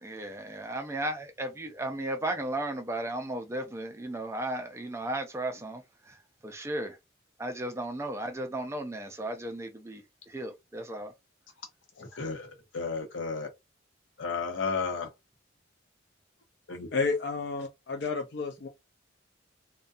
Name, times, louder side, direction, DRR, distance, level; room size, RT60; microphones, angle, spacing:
voice 1, 0.0-7.0 7.4-11.1, right 1 dB, 15° right, 0.3 m, -35 dB
voice 2, 12.0-13.5 14.2-15.1 16.7-16.9, left 4 dB, 80° left, 0.8 m, -33 dB
voice 3, 16.9-18.7, left 4 dB, 55° left, 0.4 m, -31 dB
2.6 x 2.1 x 2.3 m
head